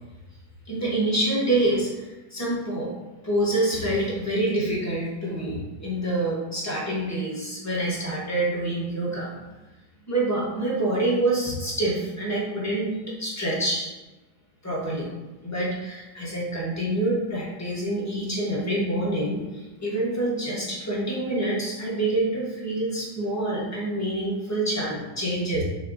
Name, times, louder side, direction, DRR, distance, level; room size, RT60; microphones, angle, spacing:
voice 1, 0.7-2.9 3.2-9.4 10.1-12.9 13.2-13.9 14.6-15.1 15.4-25.6, right 1 dB, 10° left, -5 dB, 0.9 m, -26 dB
6.2 x 2.9 x 2.6 m, 1.1 s
omnidirectional pair, 1.9 m